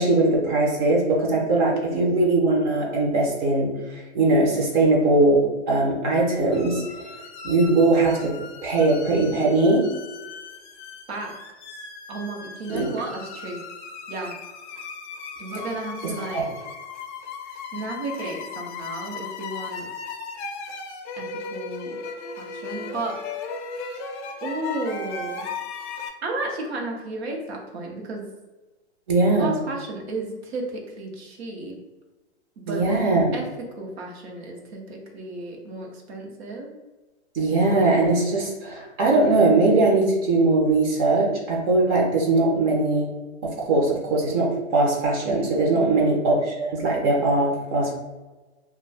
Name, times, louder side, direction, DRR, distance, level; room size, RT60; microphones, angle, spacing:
voice 1, 0.0-6.8 7.4-8.3 8.6-9.9 12.7-12.9 16.3-16.4 29.1-29.6 32.7-33.3 37.3-43.1 43.4-47.9, right 2 dB, 35° right, -1 dB, 0.7 m, -20 dB
sound 1, 6.5-26.1, left 4 dB, 45° left, 0.6 m, -37 dB
voice 2, 11.1-11.4 12.1-13.6 14.1-14.4 15.4-16.5 17.7-19.9 21.2-22.0 22.4-24.1 24.4-25.5 26.2-28.3 29.4-31.8 32.6-36.7 45.7-46.2, right 2 dB, 65° right, 1 dB, 0.9 m, -33 dB
2.3 x 2.3 x 3.3 m, 1.2 s
hypercardioid pair, 145°, 34 cm